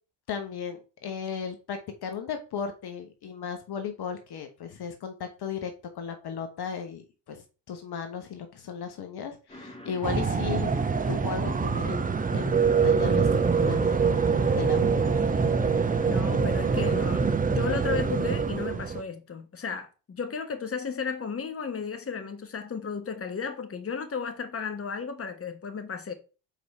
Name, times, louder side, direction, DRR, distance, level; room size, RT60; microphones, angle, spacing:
voice 1, 0.3-10.7 11.1-14.1 14.5-15.2, left 7 dB, 55° left, 1.2 m, -36 dB
sound 1, 9.5-17.4, left 1 dB, 10° left, 2.1 m, -43 dB
sound 2, 10.0-19.0, right 5 dB, 20° right, 0.6 m, -24 dB
voice 2, 16.1-26.1, left 5 dB, 30° left, 1.3 m, -34 dB
4.7 x 4.0 x 5.5 m
supercardioid pair, 65°, 47 cm